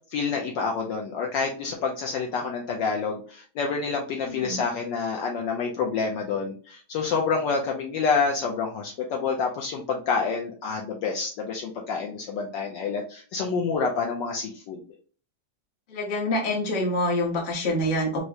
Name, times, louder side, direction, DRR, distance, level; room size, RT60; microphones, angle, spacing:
voice 1, 0.1-14.8, left 5 dB, 75° left, 0 dB, 1.1 m, -28 dB
voice 2, 4.2-4.6 15.9-18.2, left 1 dB, 40° left, -1 dB, 0.7 m, -26 dB
4.6 x 2.1 x 2.7 m, 0.41 s
omnidirectional pair, 2.3 m